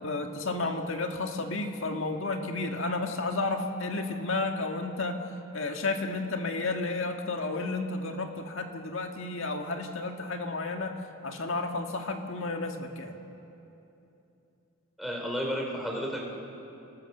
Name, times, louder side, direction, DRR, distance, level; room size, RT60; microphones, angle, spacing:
voice 1, 0.0-5.2 5.5-11.0 11.2-13.2, left 3 dB, 65° left, 4 dB, 1.8 m, -32 dB
voice 2, 15.0-16.2, equal, ahead, -1 dB, 3.2 m, -32 dB
28.5 x 19.0 x 6.7 m, 2.9 s
head